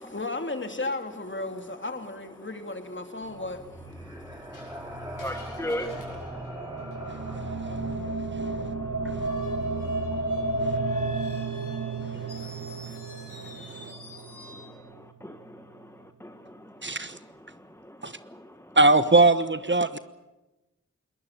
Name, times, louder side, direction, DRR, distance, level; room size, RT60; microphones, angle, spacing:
voice 1, 0.0-3.8, left 2 dB, 40° left, 2.8 m, -34 dB
sound 1, 3.2-15.5, right 2 dB, 60° right, 3.6 m, -33 dB
sound 2, 3.5-11.3, equal, 15° right, 5.4 m, -44 dB
voice 2, 4.1-4.8 5.1-11.6 11.9-12.8 13.5-13.9 14.4-16.9 17.8-18.7, equal, 10° left, 1.2 m, -42 dB
Screech, 4.5-7.4 9.1-14.8, left 3 dB, 90° left, 7.7 m, -49 dB
voice 3, 7.1-7.7 8.2-8.7 9.0-9.3 12.1-12.8 13.4-13.8 16.8-17.2 18.0-18.1 18.8-20.0, right 2 dB, 40° right, 1.1 m, -24 dB
21.5 x 20.0 x 9.0 m
cardioid pair, 50°, 31 cm